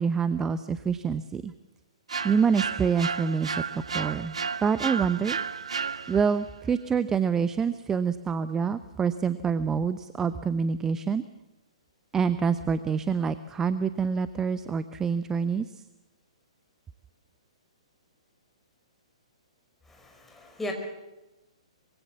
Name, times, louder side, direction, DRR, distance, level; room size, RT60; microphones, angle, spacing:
voice 1, 0.0-1.5 2.2-4.3 4.6-5.4 6.1-11.2 12.1-15.7, right 6 dB, 15° right, 13 dB, 0.7 m, -26 dB
sound 1, 2.1-6.4, right 5 dB, 70° right, 0.9 m, -33 dB
voice 2, 19.9-20.7, left 1 dB, 5° left, 2 dB, 5.2 m, -37 dB
24.5 x 23.0 x 7.3 m, 1.0 s
figure-of-eight pair, 120°, 3 cm